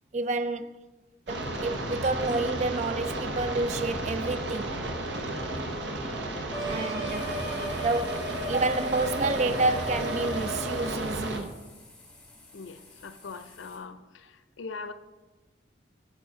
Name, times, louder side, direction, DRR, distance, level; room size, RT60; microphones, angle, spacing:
voice 1, 0.1-0.7 1.3-4.8 6.7-7.3 7.8-11.6, right 3 dB, 40° right, 0.3 m, -29 dB
sound 1, 1.3-11.4, right 1 dB, 70° right, 0.9 m, -33 dB
sound 2, 6.5-11.0, equal, 15° right, 1.3 m, -36 dB
sound 3, 7.1-13.8, left 2 dB, 5° left, 1.6 m, -54 dB
voice 2, 12.5-14.9, left 4 dB, 90° left, 0.5 m, -42 dB
8.9 x 6.8 x 3.7 m
head